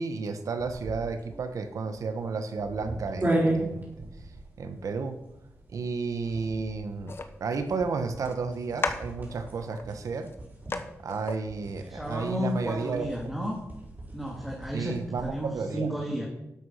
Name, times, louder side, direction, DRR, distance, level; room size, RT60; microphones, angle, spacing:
voice 1, 0.0-3.9 4.6-5.2 5.7-10.3 11.0-13.3 14.7-15.9, right 4 dB, 85° right, 9 dB, 1.2 m, -32 dB
sound 1, 0.6-15.5, right 1 dB, 35° right, 5.4 m, -37 dB
sound 2, 7.1-7.3 8.2-8.4 8.8-9.9 10.3-10.4 10.7-10.8 11.1-11.4, left 3 dB, 45° left, 1.1 m, -34 dB
voice 2, 11.8-13.6 14.1-16.3, equal, 5° right, -1 dB, 2.0 m, -33 dB
12.5 x 8.1 x 5.7 m, 0.90 s
wide cardioid pair, 85°, 5 cm